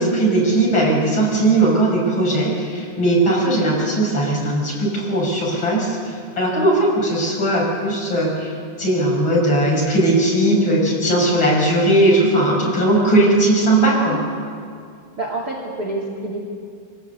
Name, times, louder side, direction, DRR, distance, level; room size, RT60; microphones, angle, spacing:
voice 1, 0.0-8.5 8.8-14.2, right 1 dB, 30° left, -3 dB, 7.0 m, -18 dB
voice 2, 15.2-16.4, right 2 dB, 25° right, -2 dB, 2.6 m, -27 dB
24.5 x 18.0 x 8.2 m, 2.4 s
omnidirectional pair, 4.7 m